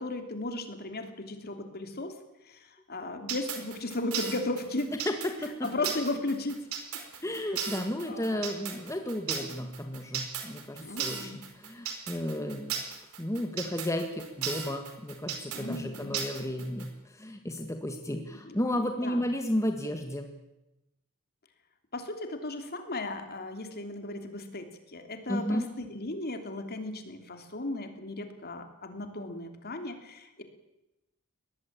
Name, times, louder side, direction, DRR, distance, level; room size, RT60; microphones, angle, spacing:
voice 1, 0.0-2.1 2.4-4.9 5.6-6.6 7.6-7.8 8.1-8.4 10.8-11.4 15.5-16.2 18.4-18.6 19.0-19.2 21.9-24.7 24.9-30.4, left 2 dB, 45° left, 6 dB, 3.1 m, -36 dB
sound 1, 3.3-16.9, right 7 dB, 85° right, 4.5 m, -35 dB
voice 2, 5.1-5.7 7.2-12.8 13.2-20.3 25.3-25.7, left 1 dB, 15° left, 4 dB, 1.9 m, -33 dB
23.0 x 19.0 x 8.8 m, 0.93 s
head